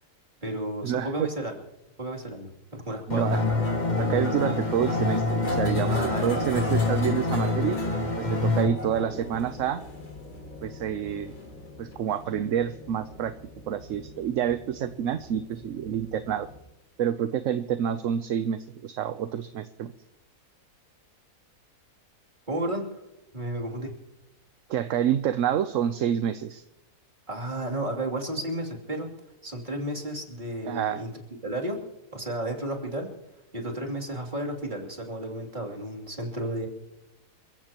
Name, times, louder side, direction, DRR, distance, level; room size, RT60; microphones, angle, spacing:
voice 1, 0.4-1.5 2.0-2.5 2.8-3.4 5.9-6.4 22.5-22.8 23.3-23.9 27.3-29.1 29.4-31.1 31.4-31.8 32.1-33.1 33.5-36.7, right 1 dB, 30° right, 0 dB, 3.1 m, -32 dB
sound 1, 3.1-8.7, left 3 dB, 30° left, 1.5 m, -27 dB
voice 2, 3.1-3.4 4.0-7.8 8.2-9.8 10.6-11.3 11.8-13.3 13.7-16.5 17.0-19.9 24.7-26.6 30.6-31.0, right 9 dB, 60° right, 11 dB, 0.9 m, -28 dB
sound 2, 3.3-16.6, left 2 dB, 75° left, 4.1 m, -36 dB
28.5 x 15.0 x 3.0 m, 0.93 s
omnidirectional pair, 1.7 m